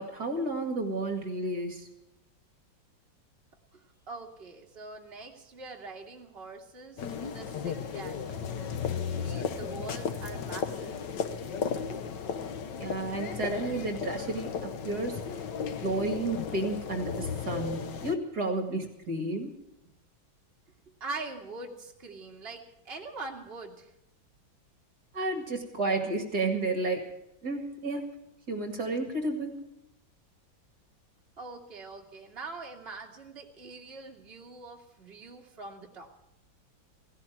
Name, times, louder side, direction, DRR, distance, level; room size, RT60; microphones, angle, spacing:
voice 1, 0.0-1.9 12.8-15.5 15.8-19.6 25.1-27.1 27.4-28.1 28.5-29.6, right 2 dB, 55° right, 4 dB, 2.5 m, -32 dB
voice 2, 3.7-8.6 9.2-11.0 20.9-23.9 31.4-36.1, right 3 dB, 30° right, -1 dB, 2.4 m, -43 dB
sound 1, 7.0-18.2, left 6 dB, 65° left, 1.6 m, -35 dB
17.5 x 16.5 x 4.6 m, 0.90 s
omnidirectional pair, 2.1 m